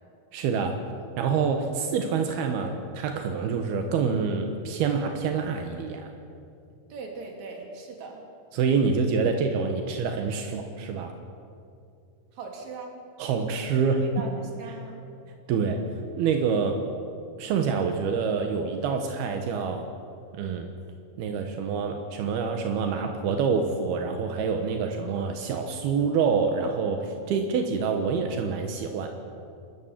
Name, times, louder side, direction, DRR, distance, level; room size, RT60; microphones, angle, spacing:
voice 1, 0.3-0.8 1.2-6.1 8.5-11.1 13.2-14.0 15.5-15.8 16.2-16.8 17.4-19.9 20.3-20.7 21.2-29.1, right 5 dB, 80° right, 5 dB, 3.2 m, -26 dB
voice 2, 6.9-8.2 9.3-9.4 12.3-13.0 13.7-15.0, right 4 dB, 50° right, 1 dB, 3.9 m, -40 dB
27.5 x 13.5 x 7.4 m, 2.5 s
omnidirectional pair, 4.4 m